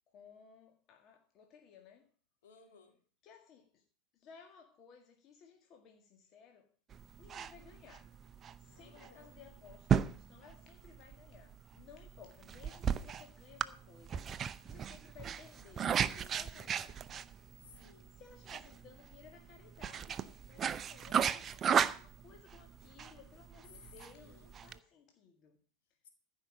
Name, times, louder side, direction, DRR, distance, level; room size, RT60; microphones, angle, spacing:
voice 1, 0.1-2.1 3.2-3.8 4.1-6.7 7.2-8.1 8.6-17.2 18.1-25.6, left 7 dB, 40° left, 1.9 m, -59 dB
voice 2, 2.4-3.0 8.7-9.3 16.5-16.8 17.6-18.2 24.1-24.5 26.0-26.1, left 5 dB, 65° left, 3.0 m, -61 dB
sound 1, 6.9-24.8, right 8 dB, 30° right, 0.6 m, -36 dB
14.0 x 5.5 x 7.5 m
figure-of-eight pair, 90°, 0 cm